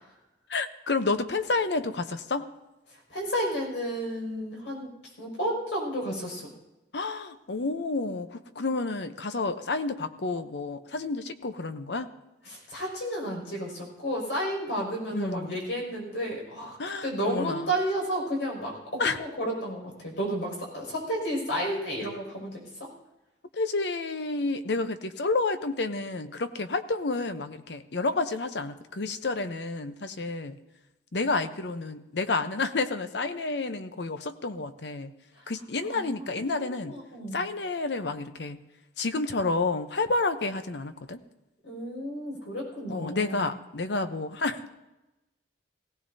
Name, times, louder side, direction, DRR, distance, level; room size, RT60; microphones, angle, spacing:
voice 1, 0.5-2.5 6.9-12.1 15.1-15.6 16.8-17.7 19.0-19.2 23.5-30.6 31.1-35.1 35.5-37.0 37.3-38.6 39.0-41.2 42.9-44.8, left 3 dB, 70° left, 9 dB, 0.8 m, -30 dB
voice 2, 3.1-4.9 5.2-6.5 12.4-16.8 17.0-22.6 35.8-37.4 41.6-43.5, equal, 90° left, -2 dB, 6.0 m, -32 dB
19.5 x 16.5 x 2.8 m, 0.99 s
head